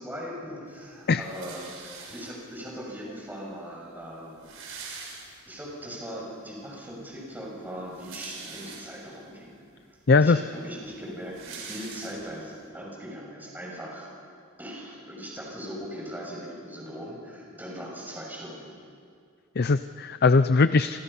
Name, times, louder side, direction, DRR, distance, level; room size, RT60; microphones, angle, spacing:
voice 1, 0.0-1.7 2.1-9.6 9.9-14.1 14.6-18.7, equal, 10° right, -3 dB, 6.5 m, -40 dB
sound 1, 1.2-2.6 3.5-3.6 3.8-3.9 4.2-5.7 6.2-6.3 7.7-9.2 9.8-9.9 10.2-12.6, right 5 dB, 70° right, 5.6 m, -43 dB
voice 2, 10.1-10.4 19.6-21.0, left 4 dB, 50° left, 12 dB, 0.5 m, -20 dB
29.0 x 26.0 x 5.6 m, 2.2 s
head